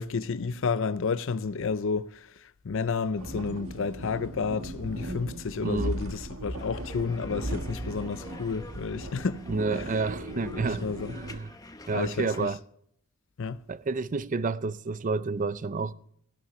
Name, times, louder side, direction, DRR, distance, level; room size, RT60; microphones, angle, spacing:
voice 1, 0.0-9.4 9.7-9.9 10.5-11.1 11.9-12.5 13.4-13.6, left 5 dB, 60° left, 0.5 m, -31 dB
sound 1, 3.2-11.4, right 1 dB, 75° right, 1.5 m, -37 dB
voice 2, 5.6-6.0 9.5-10.9 11.1-11.5 11.9-12.6 13.7-15.9, right 4 dB, 35° right, 0.5 m, -30 dB
sound 2, 6.6-12.5, left 2 dB, 15° left, 0.8 m, -48 dB
15.5 x 11.5 x 3.1 m
head